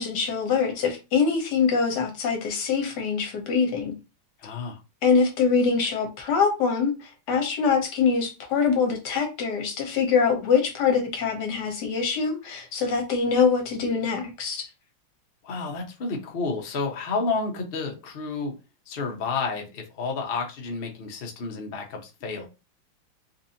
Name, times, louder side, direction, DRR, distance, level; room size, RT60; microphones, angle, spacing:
voice 1, 0.0-4.0 5.0-14.7, left 5 dB, 60° left, 3 dB, 1.4 m, -24 dB
voice 2, 4.4-4.8 15.4-18.5 18.9-22.5, left 4 dB, 90° left, 1 dB, 0.5 m, -30 dB
4.1 x 2.6 x 2.8 m, 0.29 s
omnidirectional pair, 2.3 m